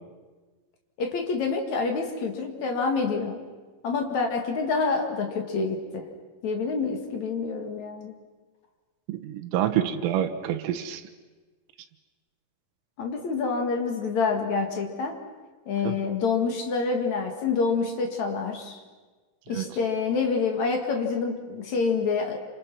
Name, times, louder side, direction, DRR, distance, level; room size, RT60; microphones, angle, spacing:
voice 1, 1.0-3.4 3.8-6.1 6.4-8.2 13.0-15.2 15.7-18.8 19.5-22.4, left 4 dB, 50° left, 3 dB, 2.4 m, -27 dB
voice 2, 9.1-11.0 15.8-16.0 19.5-19.7, right 11 dB, 85° right, 6 dB, 3.7 m, -27 dB
28.5 x 27.0 x 6.1 m, 1.3 s
omnidirectional pair, 5.7 m